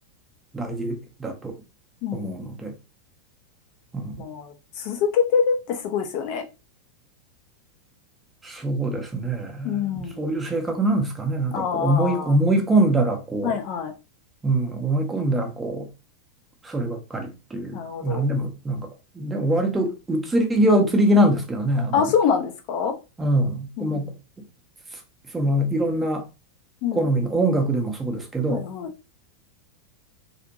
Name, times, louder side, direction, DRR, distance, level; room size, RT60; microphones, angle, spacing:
voice 1, 0.5-1.5 2.1-2.7 3.9-4.2 8.4-9.8 10.2-13.6 14.4-15.9 16.6-18.9 19.1-22.0 23.2-24.1 25.3-26.2 26.9-28.6, right 1 dB, 10° right, 0.6 m, -23 dB
voice 2, 2.0-2.5 4.2-6.4 9.6-10.2 11.5-12.4 13.4-13.9 17.7-18.2 21.9-22.9 23.8-24.1 26.8-27.1 28.5-28.9, left 7 dB, 45° left, 0.4 m, -25 dB
2.7 x 2.1 x 2.6 m
figure-of-eight pair, 90°, 0 cm